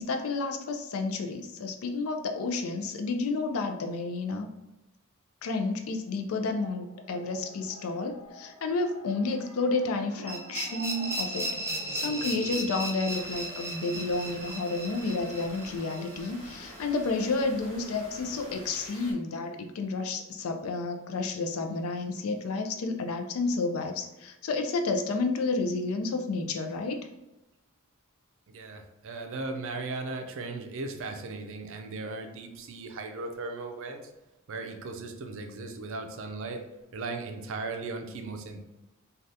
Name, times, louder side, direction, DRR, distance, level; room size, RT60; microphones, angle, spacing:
voice 1, 0.0-4.5 5.4-11.5 11.9-27.0, left 3 dB, 80° left, 5 dB, 0.4 m, -31 dB
sound 1, 6.3-12.8, right 1 dB, 15° left, 1.5 m, -47 dB
sound 2, 10.3-17.1, right 1 dB, 10° right, 0.5 m, -36 dB
sound 3, 13.1-19.1, right 1 dB, 35° right, 1.1 m, -47 dB
voice 2, 28.5-34.1 34.5-36.6 36.9-38.6, right 3 dB, 65° right, 4 dB, 0.5 m, -37 dB
3.3 x 2.3 x 2.6 m, 0.99 s
head